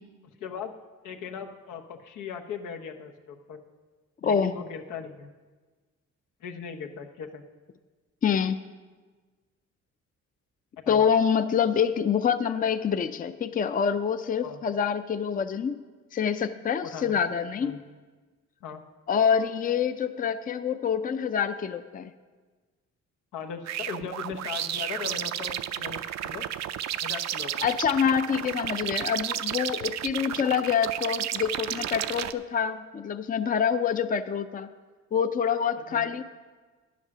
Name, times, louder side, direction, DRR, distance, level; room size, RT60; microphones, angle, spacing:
voice 1, 0.4-0.7 1.0-3.6 4.2-5.3 6.4-7.4 10.8-11.0 14.4-14.6 16.9-17.2 17.6-17.8 18.6-18.8 23.3-26.5 26.9-27.6 35.9-36.1, left 6 dB, 85° left, 4 dB, 1.1 m, -38 dB
voice 2, 4.2-4.5 8.2-8.6 10.9-15.8 16.1-17.8 19.1-22.1 27.6-34.7 35.1-36.2, left 7 dB, 30° left, 10 dB, 0.5 m, -26 dB
sound 1, 23.7-32.3, right 11 dB, 60° right, 0.5 m, -32 dB
11.0 x 8.3 x 6.1 m, 1.4 s
cardioid pair, 90°, 30 cm